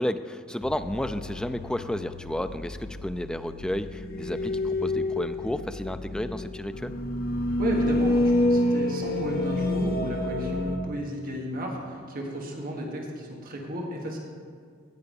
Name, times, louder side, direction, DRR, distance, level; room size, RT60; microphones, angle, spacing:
voice 1, 0.0-7.0, left 1 dB, 5° left, 10 dB, 0.3 m, -32 dB
Haunted Water, 0.6-10.8, left 1 dB, 50° left, 0.9 m, -28 dB
voice 2, 7.6-14.2, equal, 45° right, 0 dB, 1.5 m, -33 dB
16.5 x 5.8 x 5.4 m, 2.2 s
head